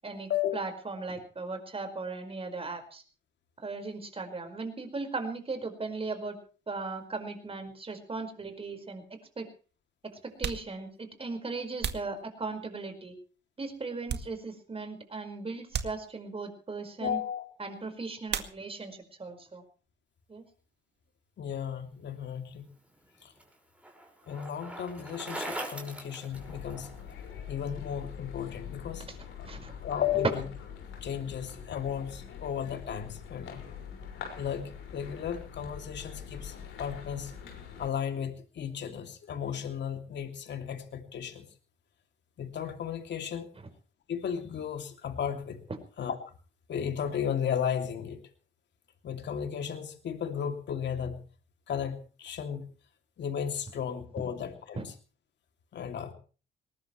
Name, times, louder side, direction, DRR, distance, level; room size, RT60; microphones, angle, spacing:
voice 1, 0.0-3.0 3.6-6.4 6.7-9.0 9.4-9.5 10.0-13.2 13.6-17.2 17.6-19.6 20.3-20.4 29.1-29.2 29.4-29.7 54.8-54.9, right 3 dB, 30° right, 6 dB, 5.1 m, -38 dB
sound 1, 8.5-8.6 9.5-9.6 10.2-12.9 13.4-14.8 15.1-15.2 15.7-16.5 18.2-19.0 19.3-20.0 20.3-22.4, right 7 dB, 60° right, 2.1 m, -40 dB
voice 2, 17.0-17.4 21.4-22.7 23.2-23.3 24.3-26.9 27.5-29.1 29.8-30.4 31.0-33.6 34.4-37.3 37.8-41.5 42.4-43.5 44.1-45.6 46.0-46.2 46.7-48.2 49.0-51.3 51.7-52.7 53.2-54.9 55.7-56.1, left 8 dB, 65° left, 5 dB, 2.9 m, -34 dB
Bicycle, 22.7-27.1, right 1 dB, 5° right, 5.6 m, -41 dB
sound 2, 26.3-37.9, left 7 dB, 85° left, 5.8 m, -44 dB
21.0 x 19.0 x 3.3 m, 0.38 s
cardioid pair, 90°, 20 cm